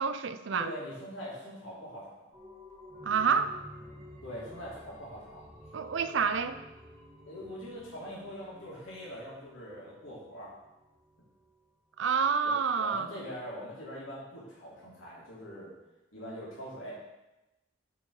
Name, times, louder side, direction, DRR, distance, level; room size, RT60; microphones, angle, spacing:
voice 1, 0.0-0.7 3.0-3.6 5.7-6.6 12.0-13.1, right 6 dB, 65° right, 11 dB, 0.4 m, -28 dB
voice 2, 0.5-2.3 4.2-5.4 7.3-10.5 12.4-12.5 12.8-15.7 16.1-17.0, equal, 75° left, -7 dB, 2.7 m, -42 dB
sound 1, 2.3-11.7 12.0-12.1, left 1 dB, 15° right, 1.2 m, -52 dB
8.2 x 4.5 x 4.8 m, 0.99 s
head